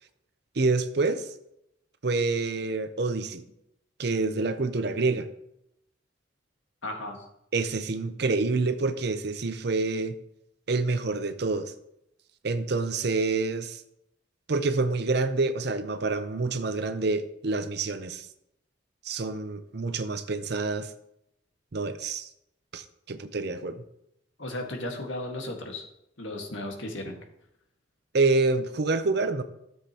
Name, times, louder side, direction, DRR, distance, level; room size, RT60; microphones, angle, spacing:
voice 1, 0.6-1.3 2.0-3.4 4.0-5.3 7.5-10.2 10.7-11.7 12.4-13.8 14.5-18.3 19.0-20.9 21.7-22.3 22.7-23.8 28.1-29.4, right 3 dB, 55° right, 10 dB, 0.6 m, -27 dB
voice 2, 6.8-7.2 24.4-25.8 26.2-27.1, left 1 dB, 70° left, 2 dB, 1.6 m, -35 dB
13.5 x 7.4 x 2.9 m, 0.80 s
head